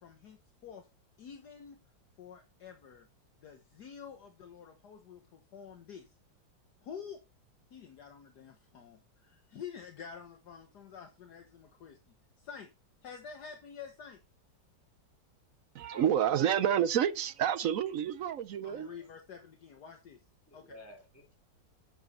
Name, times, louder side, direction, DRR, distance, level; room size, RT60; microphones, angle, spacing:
voice 1, 0.0-0.9 1.2-1.8 2.2-3.1 3.4-6.2 6.8-7.2 7.7-12.7 13.0-14.2 18.6-20.2 20.5-20.7, left 7 dB, 60° left, 1.6 m, -48 dB
voice 2, 15.7-18.9, right 9 dB, 65° right, 0.8 m, -29 dB
voice 3, 20.5-21.4, left 1 dB, 5° left, 3.4 m, -51 dB
10.5 x 7.5 x 4.3 m
omnidirectional pair, 2.0 m